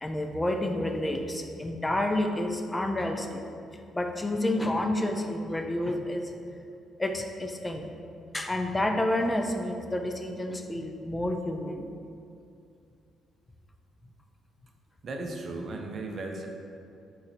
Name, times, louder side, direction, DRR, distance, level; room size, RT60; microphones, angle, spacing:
voice 1, 0.0-3.4 3.9-6.3 7.0-7.9 8.3-11.9, left 1 dB, 15° left, 4 dB, 0.4 m, -29 dB
voice 2, 15.0-16.5, right 2 dB, 50° right, 2 dB, 0.5 m, -36 dB
3.8 x 2.7 x 4.4 m, 2.5 s
cardioid pair, 90°, 0 cm